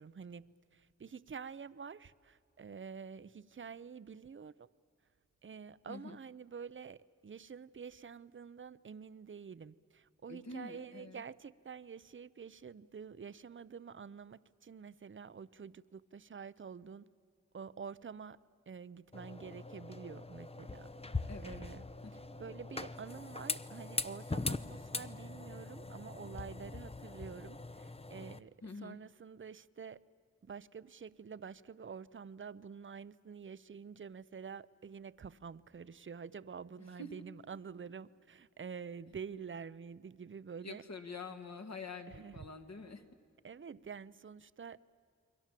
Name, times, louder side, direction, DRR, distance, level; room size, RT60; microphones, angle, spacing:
voice 1, 0.0-4.7 5.4-17.1 17.5-18.4 18.7-21.8 22.4-30.0 30.4-40.8 42.1-42.4 43.4-44.8, right 6 dB, 40° right, 17 dB, 0.7 m, -48 dB
voice 2, 5.9-6.2 10.3-11.2 21.3-21.6 28.6-29.0 37.0-37.1 40.6-43.0, left 3 dB, 60° left, 6 dB, 2.1 m, -46 dB
sound 1, 19.1-28.4, left 3 dB, 20° left, 0.7 m, -42 dB
29.5 x 22.5 x 7.6 m, 2.4 s
wide cardioid pair, 70°, 31 cm